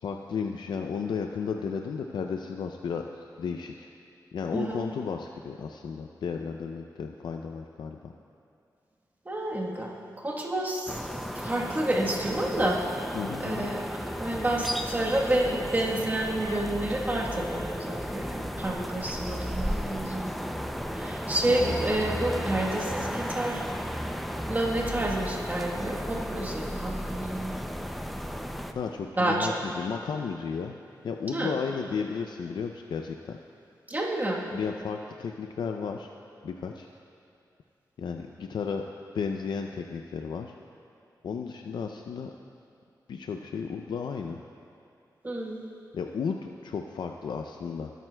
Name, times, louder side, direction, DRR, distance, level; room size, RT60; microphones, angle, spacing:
voice 1, 0.0-3.9 4.3-8.1 13.1-13.7 21.4-21.7 28.7-30.8 31.0-33.4 34.5-36.1 36.4-36.9 38.0-38.8 39.1-40.5 41.2-42.3 43.1-44.4 45.9-47.9, left 6 dB, 90° left, 4 dB, 0.4 m, -33 dB
voice 2, 4.5-4.9 9.2-9.9 10.2-11.0 11.3-12.8 13.4-20.3 20.9-23.6 24.5-27.5 29.2-29.5 31.3-31.5 33.9-34.4 45.2-45.6, right 1 dB, 25° right, -1 dB, 1.1 m, -29 dB
sound 1, 10.9-28.7, equal, ahead, 0.4 m, -34 dB
18.5 x 9.1 x 2.2 m, 2.5 s
wide cardioid pair, 135°, 7 cm